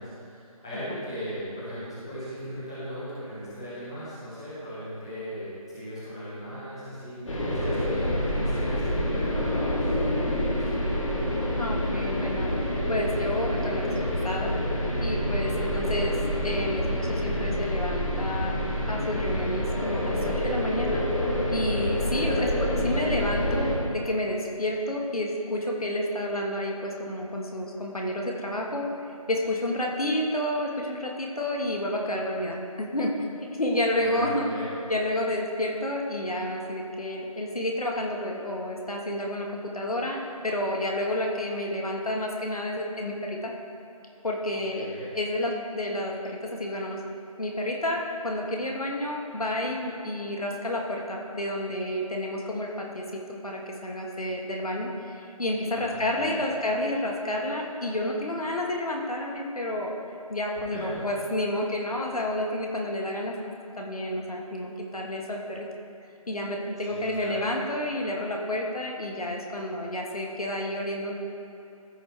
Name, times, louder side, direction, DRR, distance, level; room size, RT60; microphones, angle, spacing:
voice 1, 0.0-10.8 15.5-15.8 22.2-22.6 33.9-34.7 44.7-45.1 55.7-56.5 60.7-61.2 66.8-67.4, equal, 10° left, -12 dB, 0.7 m, -38 dB
sound 1, 7.3-23.8, equal, 60° left, 1.9 m, -27 dB
voice 2, 11.6-12.5 12.9-13.9 14.2-14.6 15.0-16.1 16.4-18.5 18.9-21.1 21.5-28.9 29.3-33.1 33.4-34.5 34.9-43.5 44.2-44.9 45.1-47.0 47.4-59.9 60.3-63.4 63.7-65.7 66.3-71.1, left 1 dB, 75° left, 0 dB, 1.5 m, -30 dB
14.0 x 5.3 x 3.3 m, 2.9 s
figure-of-eight pair, 165°, 19 cm